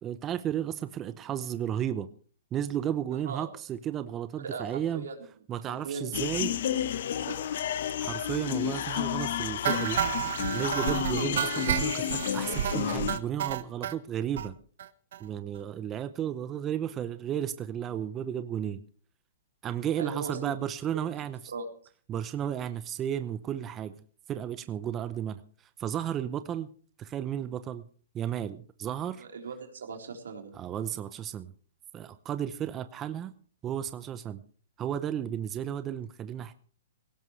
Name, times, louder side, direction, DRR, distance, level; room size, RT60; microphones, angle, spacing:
voice 1, 0.0-2.1 2.5-5.1 5.5-6.5 8.0-10.0 10.5-14.5 15.2-18.8 19.6-21.4 22.1-23.9 24.3-25.4 25.8-26.7 27.0-27.9 28.1-29.2 30.5-31.5 31.9-33.3 33.6-34.4 34.8-36.5, right 10 dB, 20° right, 12 dB, 0.7 m, -33 dB
voice 2, 3.1-3.5 4.4-5.3 5.7-6.4 7.0-7.7 20.0-20.6 21.5-21.7 29.1-30.5, right 4 dB, 85° right, 3 dB, 3.9 m, -39 dB
sound 1, 6.1-13.2, left 10 dB, 60° left, 1.1 m, -31 dB
sound 2, 9.6-13.9 14.4-14.5 14.8-14.9 15.1-15.2 15.6-15.7, right 9 dB, 65° right, 1.3 m, -31 dB
18.0 x 17.0 x 3.3 m, 0.43 s
hypercardioid pair, 150°, 0 cm